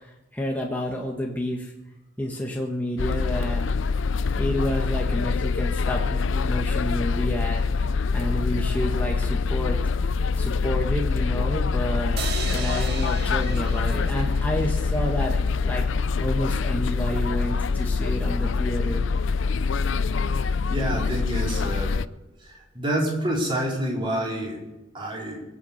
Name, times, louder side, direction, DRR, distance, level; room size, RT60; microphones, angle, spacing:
voice 1, 0.3-1.7 2.2-3.7 4.4-7.6 8.1-9.8 10.4-12.1 12.5-19.0, equal, 10° left, -1 dB, 1.5 m, -29 dB
sound 1, 3.0-22.1, left 4 dB, 65° left, 0.5 m, -25 dB
sound 2, 12.2-15.5, right 5 dB, 50° right, 1.8 m, -37 dB
voice 2, 20.4-22.0 22.4-24.6 24.9-25.4, right 1 dB, 25° right, -2 dB, 4.3 m, -28 dB
23.0 x 8.3 x 6.6 m, 1.0 s
head